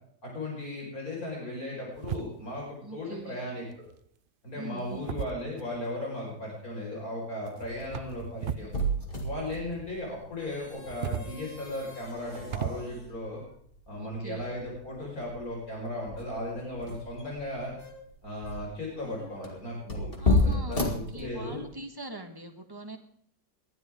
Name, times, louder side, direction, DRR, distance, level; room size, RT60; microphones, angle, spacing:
voice 1, 0.2-3.9 4.4-8.7 9.2-13.4 13.9-17.8 18.2-21.6, left 1 dB, 60° left, -3 dB, 5.5 m, -36 dB
sound 1, 1.9-2.7 3.7-4.1 4.8-5.9 7.5-8.8 9.0-9.9 10.7-12.7, right 8 dB, 75° right, 0.5 m, -37 dB
voice 2, 2.8-3.4 4.5-5.1 13.9-14.5 20.2-23.0, right 2 dB, 15° right, 5 dB, 1.4 m, -42 dB
sound 2, 7.6-21.8, left 1 dB, 35° left, 2.7 m, -33 dB
20.5 x 12.0 x 3.7 m, 0.65 s
omnidirectional pair, 1.7 m